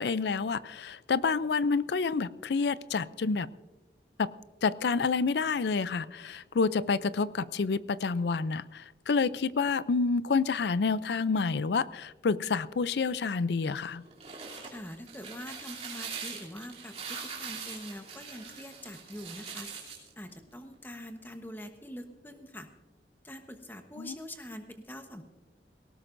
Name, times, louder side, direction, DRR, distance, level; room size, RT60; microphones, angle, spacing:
voice 1, 0.0-3.5 4.2-4.3 4.6-14.0 24.0-24.1, left 4 dB, 75° left, 17 dB, 0.5 m, -28 dB
sound 1, 14.0-20.1, right 6 dB, 40° right, 3.0 m, -42 dB
voice 2, 14.6-16.9 17.4-19.7 20.2-22.7 23.2-25.2, left 1 dB, 10° left, 6 dB, 1.1 m, -44 dB
18.5 x 18.0 x 2.6 m, 1.2 s
head